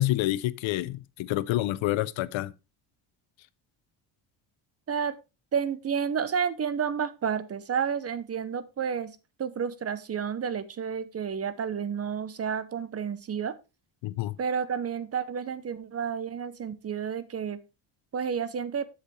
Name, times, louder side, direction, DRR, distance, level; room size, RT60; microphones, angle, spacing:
voice 1, 0.0-2.5 14.0-14.4, left 15 dB, 70° left, 0.6 m, -28 dB
voice 2, 5.5-13.5 14.4-17.6 18.1-18.8, right 7 dB, 30° right, 0.7 m, -30 dB
8.0 x 6.6 x 3.2 m
cardioid pair, 105°, 49 cm